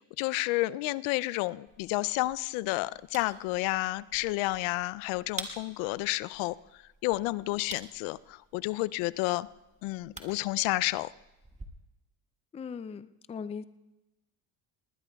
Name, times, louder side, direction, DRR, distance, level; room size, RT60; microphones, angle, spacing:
voice 1, 0.2-6.6 7.0-9.5 9.8-11.1, left 19 dB, 80° left, 19 dB, 0.6 m, -30 dB
sound 1, 1.7-11.7, right 2 dB, 15° right, 1.6 m, -49 dB
voice 2, 12.5-13.6, left 6 dB, 15° left, 14 dB, 0.3 m, -39 dB
20.5 x 19.0 x 2.3 m, 1.0 s
supercardioid pair, 90°, 48 cm